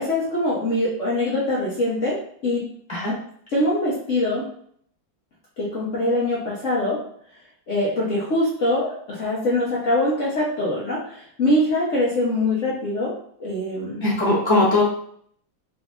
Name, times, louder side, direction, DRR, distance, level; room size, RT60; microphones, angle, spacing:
voice 1, 0.0-2.7 3.5-4.4 5.6-7.0 7.7-13.1 13.4-14.0, left 1 dB, 50° left, -6 dB, 0.9 m, -23 dB
voice 2, 14.0-14.8, left 2 dB, 25° right, -7 dB, 0.7 m, -19 dB
4.0 x 2.5 x 3.6 m, 0.64 s
omnidirectional pair, 2.1 m